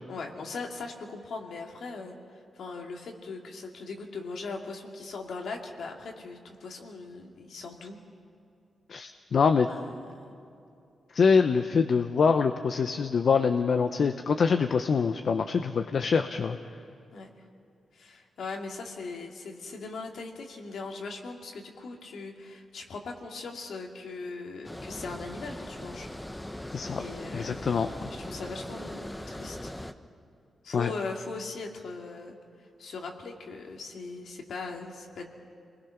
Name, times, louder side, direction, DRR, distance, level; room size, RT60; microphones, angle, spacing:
voice 1, 0.1-8.0 9.7-9.9 17.1-17.3 17.9-26.1 27.0-27.7 28.1-29.7 30.6-32.4 32.8-35.3, left 4 dB, 75° left, 1 dB, 2.5 m, -39 dB
voice 2, 8.9-9.7 11.1-16.6 26.7-27.0 27.3-28.2 30.7-30.9, left 5 dB, 60° left, 7 dB, 0.8 m, -25 dB
Water, 24.6-29.9, left 1 dB, 10° left, 0.9 m, -40 dB
28.0 x 20.5 x 5.9 m, 2.5 s
cardioid pair, 90°, 0 cm